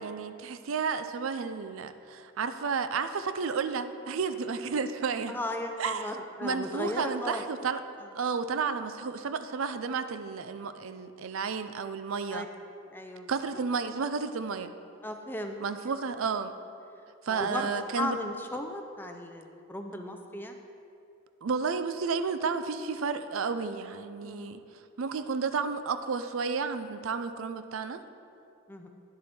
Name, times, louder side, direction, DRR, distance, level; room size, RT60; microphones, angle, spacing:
voice 1, 0.0-5.4 5.8-6.1 6.4-7.8 8.1-12.5 13.3-14.7 15.6-16.5 17.2-18.2 21.4-24.6 25.0-28.0, right 5 dB, 75° right, 10 dB, 0.5 m, -32 dB
voice 2, 5.3-7.4 8.0-8.1 12.3-12.5 12.9-13.3 15.0-15.6 17.3-20.6 24.2-24.6 28.7-28.9, left 1 dB, 10° left, 4 dB, 0.5 m, -36 dB
10.5 x 7.7 x 4.3 m, 2.6 s
head